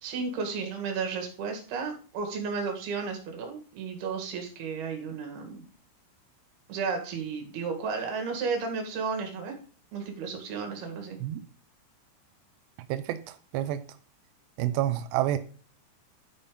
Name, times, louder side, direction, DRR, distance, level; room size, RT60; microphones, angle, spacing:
voice 1, 0.0-5.6 6.7-9.6 9.9-11.2, right 5 dB, 60° right, 3.6 m, -33 dB
voice 2, 12.9-13.8 14.6-15.4, right 13 dB, 85° right, 2.4 m, -29 dB
12.0 x 5.5 x 5.1 m
omnidirectional pair, 5.6 m